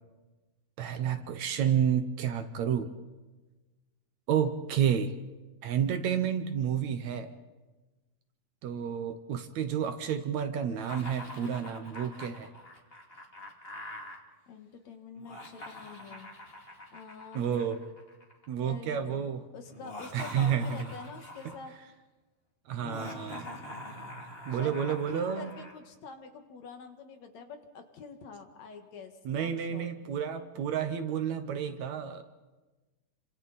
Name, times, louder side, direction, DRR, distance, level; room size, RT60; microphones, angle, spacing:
voice 1, 0.8-2.9 4.3-5.1 5.6-7.3 8.6-12.5 17.3-17.8 18.5-19.4 20.1-20.9 22.7-23.4 24.5-25.5 29.3-32.2, right 8 dB, 65° right, 9 dB, 2.1 m, -30 dB
Laughter, 10.8-14.2 15.1-18.5 19.7-21.7 22.8-25.8, left 1 dB, 20° left, 2.4 m, -45 dB
voice 2, 14.5-16.3 16.9-17.5 18.6-19.2 19.5-21.7 22.9-23.5 24.5-29.9, left 5 dB, 60° left, 6 dB, 2.7 m, -46 dB
29.5 x 26.0 x 4.2 m, 1.2 s
omnidirectional pair, 3.7 m